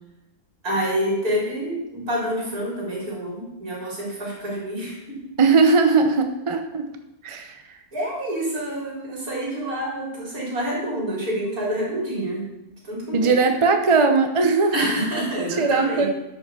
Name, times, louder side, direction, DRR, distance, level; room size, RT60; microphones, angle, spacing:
voice 1, 0.6-5.2 7.9-12.5 12.8-13.4 14.7-16.1, right 1 dB, 65° right, -4 dB, 4.3 m, -27 dB
voice 2, 5.4-6.8 7.2-7.8 13.1-14.7 15.6-16.1, right 4 dB, 30° right, 6 dB, 0.6 m, -19 dB
11.0 x 5.6 x 6.9 m, 0.93 s
omnidirectional pair, 1.7 m